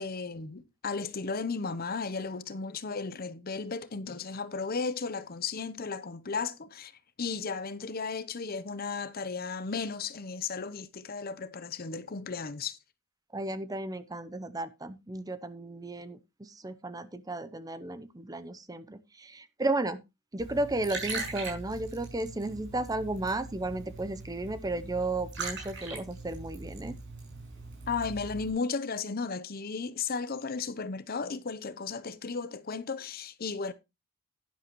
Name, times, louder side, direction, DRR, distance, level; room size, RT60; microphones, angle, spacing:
voice 1, 0.0-6.9 7.2-12.8 27.9-33.7, left 4 dB, 45° left, 0.7 m, -35 dB
voice 2, 13.3-20.0 20.3-26.9, right 2 dB, 15° right, 0.6 m, -34 dB
Liquid, 20.4-28.5, right 3 dB, 55° right, 5.7 m, -41 dB
11.0 x 10.5 x 3.0 m
head